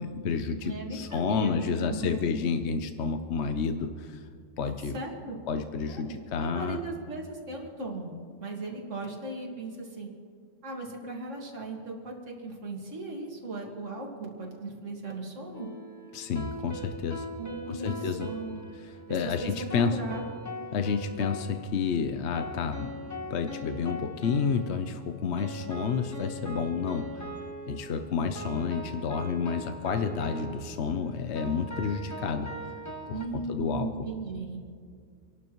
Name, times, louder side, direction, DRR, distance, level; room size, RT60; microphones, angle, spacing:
voice 1, 0.0-4.2 4.6-4.9 5.5-6.8 16.1-17.3 17.7-18.3 18.8-20.0 20.7-22.9 23.3-27.2 27.7-32.5 33.1-33.2 33.5-33.9, left 5 dB, 55° left, 7 dB, 0.9 m, -30 dB
voice 2, 0.6-2.3 4.9-5.4 5.9-8.1 8.4-10.1 10.6-15.7 17.4-18.6 19.1-20.2 33.1-34.6, right 2 dB, 55° right, 0 dB, 2.3 m, -37 dB
sound 1, 15.5-33.2, equal, 15° left, 1.1 m, -41 dB
27.5 x 11.5 x 3.1 m, 2.1 s
omnidirectional pair, 1.5 m